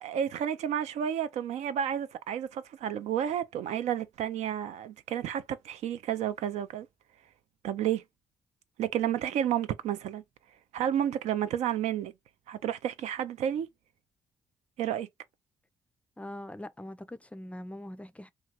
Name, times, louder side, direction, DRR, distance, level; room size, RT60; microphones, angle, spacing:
voice 1, 0.0-6.9 7.6-8.0 8.8-10.2 10.7-12.1 12.5-13.7 14.8-15.1, right 10 dB, 65° right, 0.4 m, -31 dB
voice 2, 16.2-18.3, left 1 dB, 10° left, 0.4 m, -42 dB
2.8 x 2.3 x 2.8 m
hypercardioid pair, 45°, 12 cm